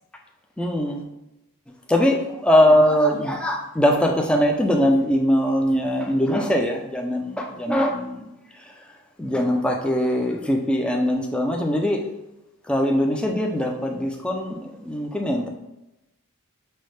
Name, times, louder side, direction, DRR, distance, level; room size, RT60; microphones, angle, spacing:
voice 1, 0.6-1.1 1.9-8.3 9.2-12.1 12.7-15.5, equal, 5° left, 1 dB, 0.3 m, -21 dB
5.4 x 2.1 x 3.2 m, 0.93 s
head